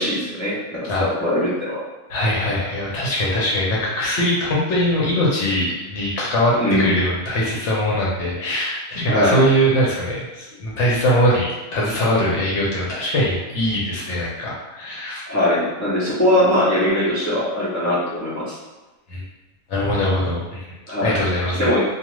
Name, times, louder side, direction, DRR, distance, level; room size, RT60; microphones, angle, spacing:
voice 1, 0.0-1.8 6.6-7.0 9.1-9.4 15.3-18.5 20.9-21.2 21.6-21.8, left 1 dB, 25° left, -9 dB, 0.4 m, -21 dB
voice 2, 2.1-15.2 19.1-19.2 19.7-20.6 21.0-21.7, equal, 60° left, -5 dB, 0.9 m, -21 dB
2.4 x 2.4 x 3.0 m, 1.2 s
omnidirectional pair, 1.5 m